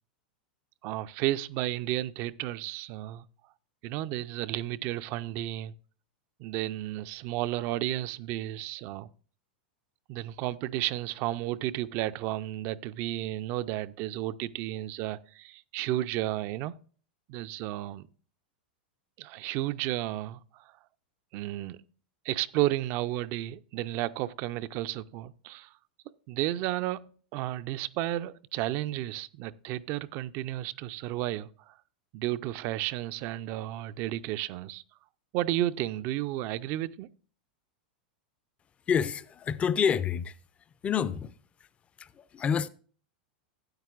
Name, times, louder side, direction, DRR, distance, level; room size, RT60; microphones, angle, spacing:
voice 1, 0.8-3.2 3.8-5.7 6.4-9.1 10.1-16.7 17.3-18.1 19.2-20.6 21.3-21.8 22.2-25.7 26.3-31.7 32.1-34.8 35.3-37.1, right 15 dB, 50° right, 0.4 m, -32 dB
voice 2, 38.9-40.4 40.8-41.3 42.0-42.7, left 7 dB, 25° left, 0.5 m, -28 dB
13.0 x 8.9 x 2.4 m
hypercardioid pair, 105°, 5 cm